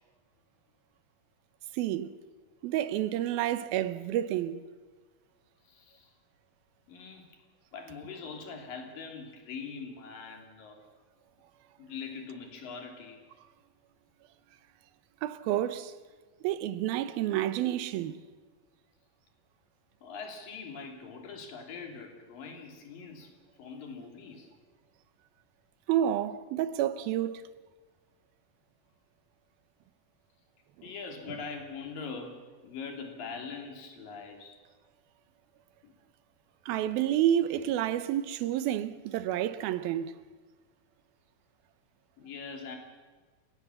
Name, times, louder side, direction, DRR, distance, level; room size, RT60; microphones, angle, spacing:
voice 1, 1.7-2.1 2.6-4.6 15.2-15.9 16.4-18.2 25.9-27.4 30.8-30.9 31.3-31.4 36.7-40.2, right 11 dB, 80° right, 2.7 m, -29 dB
voice 2, 5.7-6.1 6.9-7.3 7.7-10.8 11.8-13.2 20.0-23.3 23.6-24.5 30.8-34.6 35.8-35.9 42.2-42.8, left 5 dB, 65° left, 4.6 m, -42 dB
29.0 x 17.5 x 7.1 m
omnidirectional pair, 4.2 m